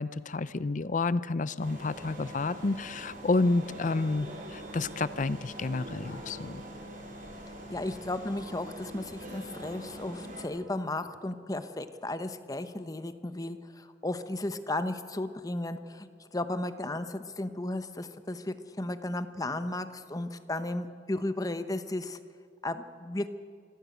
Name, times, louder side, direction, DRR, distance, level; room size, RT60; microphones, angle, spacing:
voice 1, 0.0-6.6, left 3 dB, 45° left, 16 dB, 0.5 m, -30 dB
sound 1, 1.6-10.4, right 1 dB, 45° right, 4.7 m, -43 dB
voice 2, 7.7-16.1 16.3-22.2 22.6-23.3, left 1 dB, 20° left, 10 dB, 0.9 m, -34 dB
25.5 x 15.0 x 8.2 m, 2.2 s
head